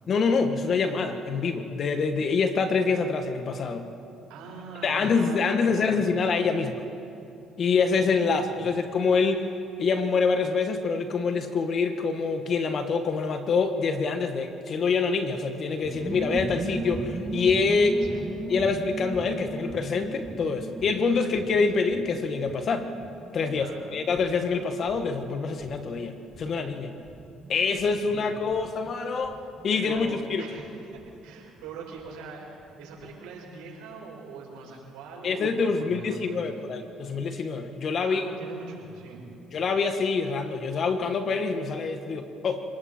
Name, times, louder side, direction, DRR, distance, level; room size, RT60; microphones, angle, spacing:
voice 1, 0.1-3.9 4.8-6.8 7.6-9.4 9.8-18.0 18.5-22.9 23.3-26.9 27.5-29.4 29.6-30.4 35.2-38.3 39.5-42.6, left 4 dB, 55° left, 7 dB, 1.8 m, -26 dB
voice 2, 4.3-6.2 6.5-6.6 7.8-8.7 18.1-18.2 23.5-23.8 28.0-28.3 29.7-36.4 38.0-39.2, right 4 dB, 85° right, -3 dB, 6.3 m, -43 dB
sound 1, 15.8-32.1 32.4-32.5 32.7-33.1, right 2 dB, 20° right, 1.8 m, -38 dB
28.5 x 20.0 x 4.6 m, 2.7 s
supercardioid pair, 75°, 0 cm